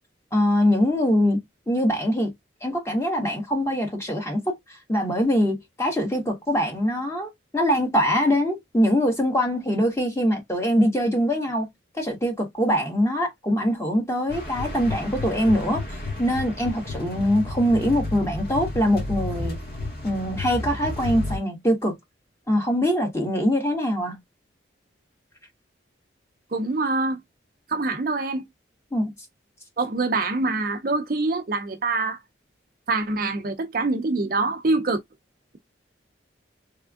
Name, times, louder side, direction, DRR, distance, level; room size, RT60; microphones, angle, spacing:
voice 1, 0.3-1.4 1.7-2.3 2.6-4.6 4.9-11.7 11.9-15.8 16.2-19.6 20.0-21.9 22.5-24.2 28.9-29.1, equal, 15° left, 1.4 m, -23 dB
sound 1, 14.3-21.4, left 2 dB, 55° left, 1.6 m, -32 dB
voice 2, 26.5-27.2 27.7-28.5 29.8-32.2 32.9-35.0, right 3 dB, 45° right, 0.5 m, -25 dB
3.5 x 3.4 x 2.4 m
head